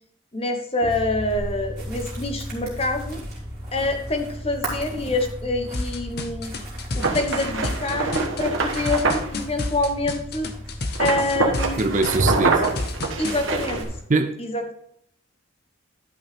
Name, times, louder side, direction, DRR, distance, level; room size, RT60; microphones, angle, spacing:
voice 1, 0.3-3.2 3.7-6.5 6.9-10.5 11.0-12.2 13.2-13.9 14.4-14.7, left 2 dB, 30° left, 1.0 m, -26 dB
sound 1, 0.8-14.0, equal, 15° right, 3.0 m, -35 dB
sound 2, 5.7-13.4, left 2 dB, 50° left, 0.8 m, -30 dB
sound 3, 7.0-9.3 11.0-13.8, right 3 dB, 75° right, 1.2 m, -24 dB
voice 2, 11.8-12.6 14.1-14.4, right 3 dB, 35° right, 0.5 m, -22 dB
11.5 x 5.5 x 3.5 m
head